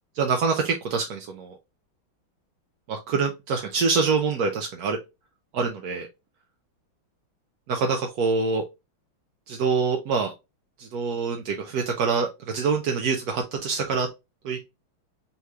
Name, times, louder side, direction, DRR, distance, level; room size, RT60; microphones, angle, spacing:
voice 1, 0.1-1.5 2.9-5.0 5.5-6.1 7.7-8.6 9.5-10.3 10.8-14.1 14.4-14.6, right 4 dB, 65° right, 3 dB, 1.0 m, -25 dB
5.6 x 3.1 x 2.4 m, 0.24 s
omnidirectional pair, 2.2 m